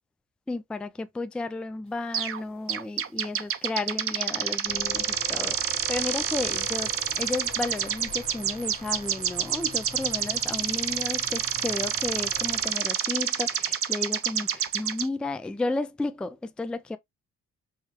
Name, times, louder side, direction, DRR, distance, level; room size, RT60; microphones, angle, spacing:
voice 1, 0.5-17.0, left 2 dB, 5° left, 0.3 m, -33 dB
sound 1, 2.1-2.4 2.7-15.1, right 8 dB, 45° right, 0.6 m, -28 dB
sound 2, 4.7-12.7, left 5 dB, 30° left, 1.2 m, -44 dB
4.9 x 2.2 x 2.9 m
cardioid pair, 90°, 30 cm